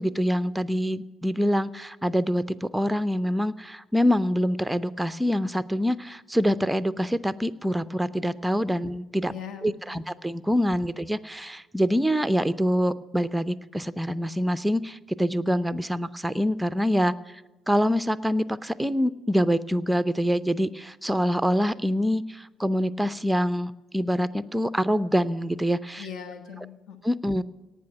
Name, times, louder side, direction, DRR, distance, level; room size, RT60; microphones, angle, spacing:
voice 1, 0.0-9.3 9.6-17.1 17.7-26.1 27.0-27.4, equal, 5° right, 15 dB, 0.5 m, -25 dB
voice 2, 9.3-10.0 26.0-27.0, left 7 dB, 55° left, 8 dB, 1.2 m, -40 dB
18.0 x 6.0 x 9.5 m, 1.1 s
figure-of-eight pair, 50°, 0 cm